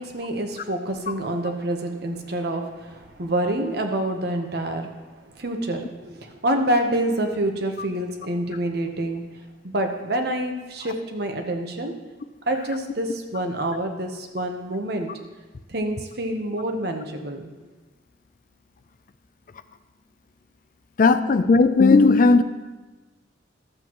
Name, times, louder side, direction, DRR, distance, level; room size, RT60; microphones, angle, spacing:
voice 1, 0.0-4.9 5.3-9.2 9.6-11.9 12.5-15.1 15.7-17.5, right 1 dB, 60° right, 4 dB, 1.0 m, -27 dB
voice 2, 21.0-22.4, left 3 dB, 45° left, 11 dB, 0.4 m, -16 dB
13.0 x 7.8 x 3.1 m, 1.2 s
head